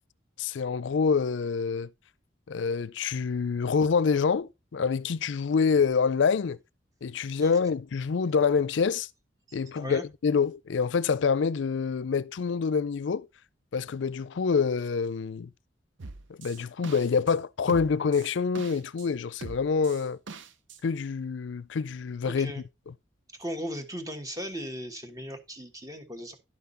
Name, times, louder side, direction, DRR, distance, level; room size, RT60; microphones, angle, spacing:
voice 1, 0.4-1.9 2.5-6.6 7.0-9.1 9.5-13.3 13.7-15.5 16.3-20.2 20.8-22.9, left 5 dB, 70° left, 0.4 m, -26 dB
voice 2, 9.5-10.0 22.2-22.6 23.4-26.4, equal, 20° right, 1.3 m, -37 dB
sound 1, 16.0-17.4 17.7-19.1 19.4-20.8, right 3 dB, 75° right, 0.8 m, -43 dB
11.0 x 5.8 x 4.0 m
head